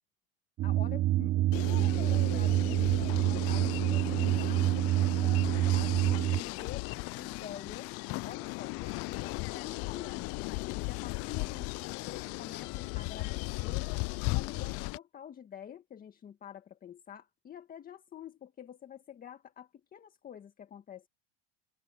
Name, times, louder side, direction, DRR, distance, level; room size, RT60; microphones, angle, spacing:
voice 1, 0.6-7.9 8.2-10.3 10.7-13.9 14.2-21.1, left 9 dB, 30° left, 1.8 m, -48 dB
sound 1, 0.6-6.4, right 15 dB, 30° right, 0.4 m, -27 dB
sound 2, 1.5-15.0, left 26 dB, 50° left, 0.4 m, -36 dB
supercardioid pair, 135°, 31 cm